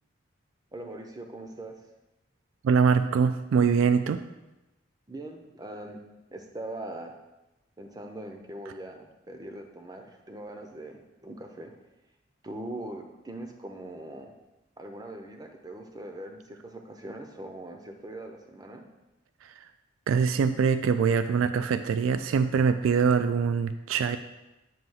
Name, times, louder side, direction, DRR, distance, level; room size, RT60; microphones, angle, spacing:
voice 1, 0.7-1.8 5.1-6.0 6.3-7.2 7.8-11.8 12.4-14.3 14.8-18.8, right 1 dB, 20° right, 4 dB, 0.5 m, -41 dB
voice 2, 2.6-4.2 20.1-24.2, right 6 dB, 85° right, 10 dB, 0.3 m, -23 dB
7.6 x 2.8 x 5.5 m, 0.99 s
head